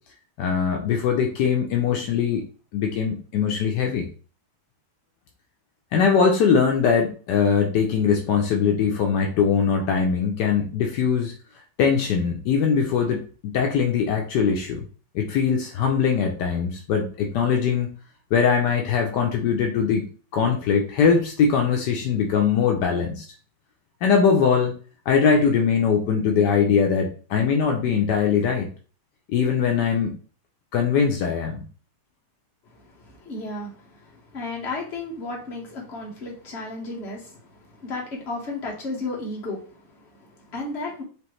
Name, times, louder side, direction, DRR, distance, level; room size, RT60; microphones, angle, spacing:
voice 1, 0.4-2.4 2.7-4.1 5.9-11.3 11.8-13.2 13.5-14.8 15.1-17.9 18.3-23.2 24.0-24.7 25.1-28.7 29.3-30.2 30.7-31.6, left 6 dB, 75° left, 2 dB, 1.2 m, -21 dB
voice 2, 32.6-41.0, left 2 dB, 40° left, -2 dB, 1.5 m, -34 dB
5.0 x 3.0 x 3.1 m, 0.40 s
omnidirectional pair, 1.9 m